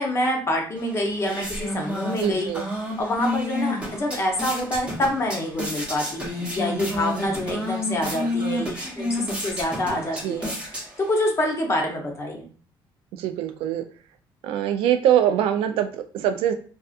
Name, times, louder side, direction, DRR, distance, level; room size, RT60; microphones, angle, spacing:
voice 1, 0.0-2.5 3.0-10.5 11.0-12.5, left 1 dB, 30° left, 2 dB, 0.7 m, -26 dB
sound 1, 0.8-11.3, left 1 dB, 10° right, 0.8 m, -30 dB
voice 2, 2.2-2.7 8.4-8.7 10.2-10.5 13.2-13.8 14.4-16.5, right 10 dB, 85° right, 7 dB, 0.4 m, -23 dB
2.5 x 2.3 x 2.4 m, 0.40 s
cardioid pair, 125°, 9 cm